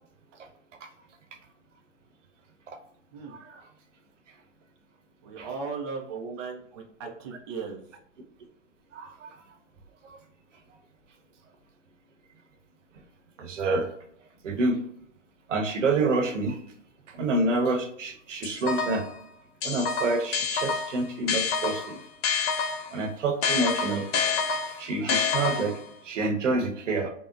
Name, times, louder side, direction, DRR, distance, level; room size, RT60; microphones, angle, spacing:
voice 1, 5.2-7.8, right 4 dB, 25° right, 0 dB, 0.3 m, -37 dB
voice 2, 8.9-9.3 13.4-13.9 14.4-14.8 15.5-16.6 17.1-19.0 19.6-22.0 22.9-24.1 24.8-25.8 26.0-27.1, right 2 dB, 75° right, 5 dB, 0.8 m, -27 dB
sound 1, 18.4-19.1 19.6-23.0 23.4-25.9, left 5 dB, 55° left, 0.6 m, -28 dB
3.8 x 2.0 x 2.4 m, 0.64 s
hypercardioid pair, 125°, 38 cm